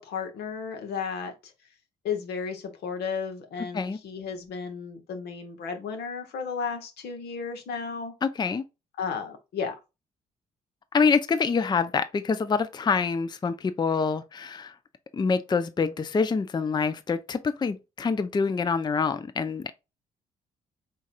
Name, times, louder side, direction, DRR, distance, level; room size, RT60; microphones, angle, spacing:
voice 1, 0.0-1.5 2.0-8.1 9.0-9.7, left 6 dB, 75° left, 1.1 m, -33 dB
voice 2, 8.2-8.6 10.9-14.7 15.1-19.7, left 5 dB, 25° left, 0.4 m, -26 dB
4.0 x 3.7 x 2.4 m
hypercardioid pair, 50°, 17 cm